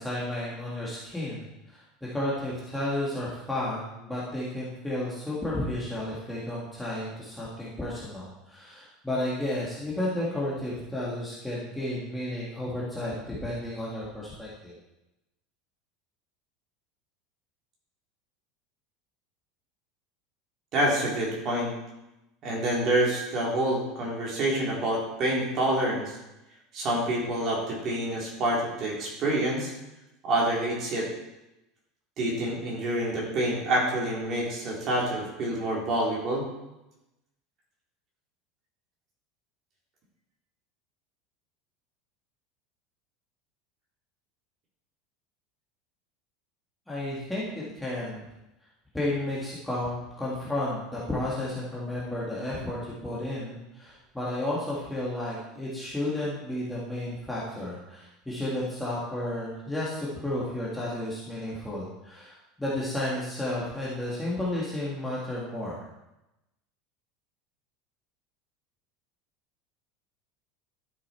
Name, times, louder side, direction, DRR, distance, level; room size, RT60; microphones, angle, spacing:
voice 1, 0.0-1.8 2.1-14.7 46.9-47.5 47.8-48.3 48.9-65.8, left 1 dB, 5° left, -7 dB, 1.7 m, -32 dB
voice 2, 20.7-21.7 22.4-26.1 26.7-29.7 30.2-31.1 32.2-36.4, right 1 dB, 30° right, -4 dB, 3.2 m, -27 dB
12.0 x 6.9 x 4.3 m, 0.94 s
supercardioid pair, 170°, 0 cm